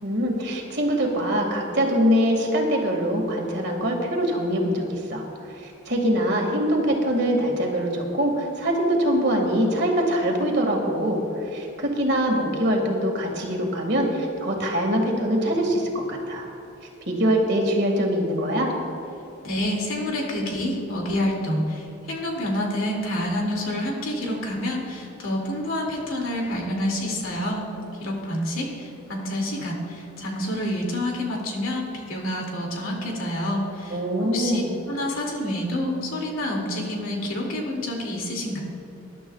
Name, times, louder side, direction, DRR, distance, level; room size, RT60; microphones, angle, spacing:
voice 1, 0.0-5.2 5.6-11.2 11.5-16.5 17.1-18.7 33.9-34.7, equal, 50° right, 1 dB, 1.9 m, -23 dB
voice 2, 19.4-27.7 28.0-38.6, left 1 dB, 85° left, -1 dB, 2.4 m, -28 dB
21.0 x 11.5 x 2.3 m, 2.9 s
head